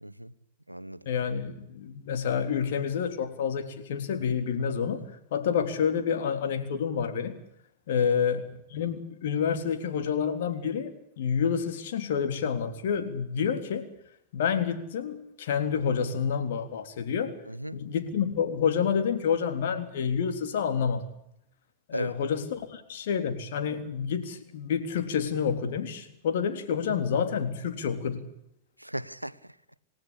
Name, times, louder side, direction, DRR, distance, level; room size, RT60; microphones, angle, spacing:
voice 1, 0.0-0.3 0.7-1.1 7.9-8.1 17.5-17.8 21.9-22.1 28.8-29.5, right 1 dB, 85° right, 0.9 m, -36 dB
voice 2, 1.1-5.0 5.3-7.3 7.9-8.4 8.7-13.9 14.3-17.3 17.7-21.1 21.9-28.2, left 7 dB, 55° left, 3.6 m, -28 dB
28.5 x 16.0 x 8.6 m
figure-of-eight pair, 90°, 0 cm